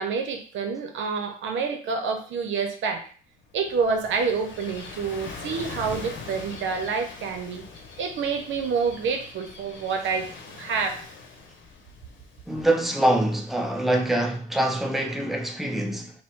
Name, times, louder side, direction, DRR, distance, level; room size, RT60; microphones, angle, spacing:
voice 1, 0.0-3.1 3.5-7.6 8.0-11.0, right 5 dB, 75° right, 0.7 m, -28 dB
Gull seagull / Waves surf, 3.3-13.9, left 4 dB, 75° left, 1.1 m, -42 dB
voice 2, 12.5-16.1, right 1 dB, ahead, 0.6 m, -24 dB
4.6 x 2.0 x 3.7 m
cardioid pair, 90°, 20 cm